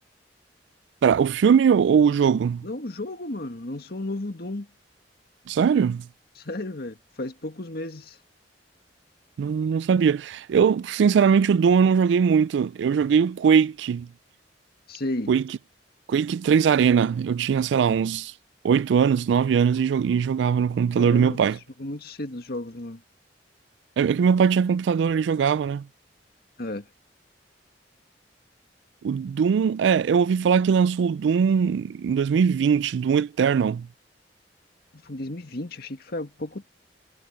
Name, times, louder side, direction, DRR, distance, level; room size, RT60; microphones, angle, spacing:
voice 1, 1.0-2.6 5.5-6.1 9.4-14.1 15.3-15.4 16.1-18.3 18.6-21.6 24.0-25.9 29.0-33.9, right 6 dB, 75° right, 0.3 m, -21 dB
voice 2, 2.6-4.7 6.4-8.2 14.9-15.3 21.0-21.5 21.8-23.0 26.6-26.9 35.0-36.7, left 1 dB, 60° left, 1.9 m, -33 dB
head